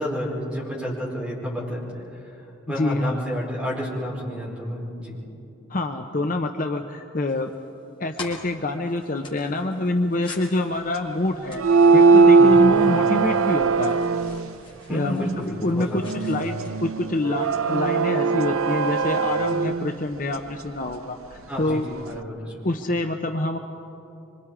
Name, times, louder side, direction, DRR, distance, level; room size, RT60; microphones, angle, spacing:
voice 1, 0.0-5.2 12.4-12.7 14.9-16.4 21.5-22.8, equal, 5° right, -6 dB, 4.9 m, -31 dB
voice 2, 2.7-3.2 5.7-7.5 8.0-11.6 11.9-14.0 14.9-15.2 15.6-21.8 22.6-23.6, left 2 dB, 40° left, 5 dB, 0.7 m, -26 dB
sound 1, 7.3-16.7, left 3 dB, 25° left, 3.0 m, -46 dB
sound 2, 11.5-14.5 16.0-19.9, right 4 dB, 85° right, 0.6 m, -19 dB
25.5 x 24.0 x 4.9 m, 2.8 s
head